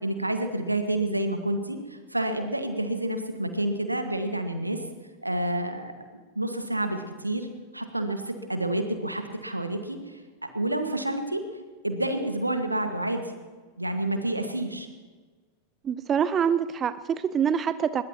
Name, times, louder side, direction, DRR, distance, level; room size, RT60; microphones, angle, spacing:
voice 1, 0.0-4.8 5.2-5.9 6.4-7.5 7.7-11.4 11.8-13.3 13.8-14.9, right 1 dB, 85° right, 6 dB, 1.7 m, -29 dB
voice 2, 15.8-18.0, right 8 dB, 25° right, 14 dB, 0.6 m, -25 dB
21.0 x 20.5 x 2.9 m, 1.4 s
figure-of-eight pair, 90°, 0 cm